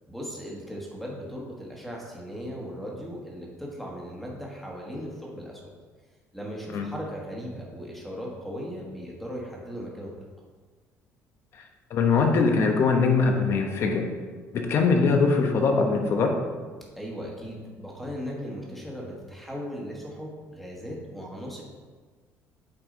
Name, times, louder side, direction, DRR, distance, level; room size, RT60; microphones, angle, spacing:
voice 1, 0.1-5.6 6.3-10.1 16.9-21.6, equal, ahead, -3 dB, 1.4 m, -37 dB
voice 2, 11.9-14.1 14.5-16.4, left 4 dB, 50° left, 3 dB, 1.0 m, -22 dB
8.5 x 4.7 x 3.8 m, 1.5 s
cardioid pair, 155°, 6 cm